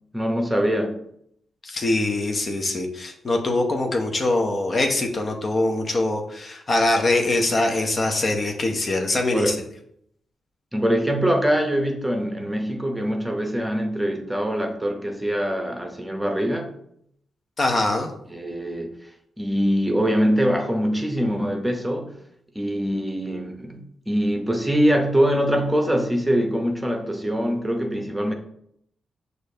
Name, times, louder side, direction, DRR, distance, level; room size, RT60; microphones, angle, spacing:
voice 1, 0.1-1.0 9.3-9.6 10.7-16.7 18.3-18.9 19.4-22.1 22.5-28.3, equal, 10° right, 4 dB, 0.9 m, -23 dB
voice 2, 1.6-9.5 17.6-18.1, left 2 dB, 45° left, 3 dB, 0.8 m, -23 dB
6.2 x 2.6 x 2.8 m, 0.71 s
hypercardioid pair, 40°, 0 cm